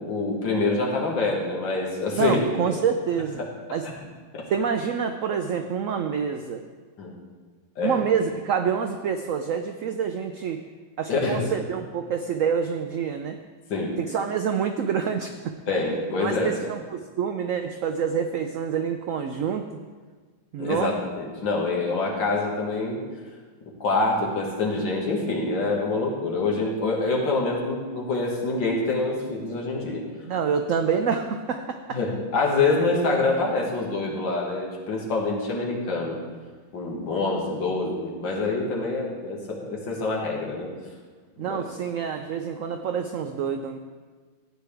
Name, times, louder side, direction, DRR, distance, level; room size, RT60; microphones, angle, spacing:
voice 1, 0.0-2.4 2.7-2.8 4.3-4.5 7.0-7.1 7.8-8.0 11.1-11.5 13.7-14.0 15.7-16.6 20.6-23.0 23.8-30.0 31.9-36.2 36.7-40.7 41.4-41.6, left 3 dB, 85° left, -2 dB, 2.5 m, -26 dB
voice 2, 2.1-3.4 3.7-3.9 4.5-6.6 7.8-10.6 11.0-13.4 14.0-15.5 16.2-19.8 20.5-21.0 30.2-32.0 41.4-43.8, right 7 dB, 90° right, 7 dB, 0.7 m, -27 dB
14.5 x 9.2 x 3.4 m, 1.5 s
omnidirectional pair, 2.0 m